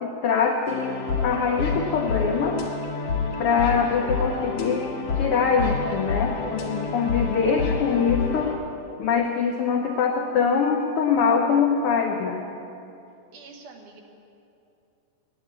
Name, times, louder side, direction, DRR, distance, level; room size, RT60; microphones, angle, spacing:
voice 1, 0.0-1.0 1.2-2.6 3.4-4.9 5.1-8.5 9.0-12.4, left 6 dB, 90° left, 2 dB, 1.2 m, -23 dB
sound 1, 0.7-8.6, left 4 dB, 60° left, 2.6 m, -28 dB
voice 2, 13.3-14.0, right 4 dB, 85° right, 2 dB, 2.8 m, -45 dB
9.2 x 9.2 x 8.6 m, 2.7 s
omnidirectional pair, 3.5 m